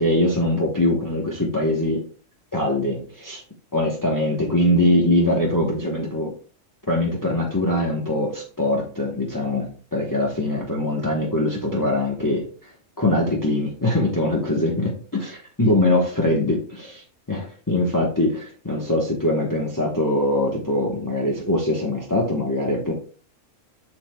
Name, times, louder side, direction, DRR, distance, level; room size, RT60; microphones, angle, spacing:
voice 1, 0.0-2.0 2.5-3.4 3.7-6.3 6.9-12.5 13.0-22.9, left 1 dB, 15° left, -3 dB, 1.1 m, -22 dB
7.4 x 6.5 x 2.3 m, 0.41 s
omnidirectional pair, 1.3 m